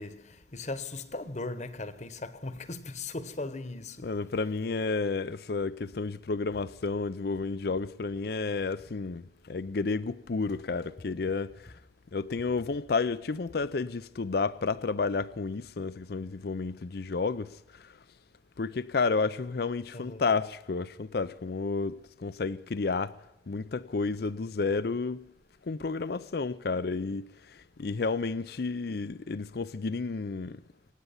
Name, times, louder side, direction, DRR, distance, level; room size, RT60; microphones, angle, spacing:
voice 1, 0.0-4.1 19.9-20.2, left 2 dB, 40° left, 1.1 m, -38 dB
voice 2, 4.0-11.8 12.1-18.0 18.6-23.2 23.5-25.3 25.6-30.6, left 4 dB, 60° left, 0.5 m, -31 dB
26.0 x 9.5 x 5.6 m
head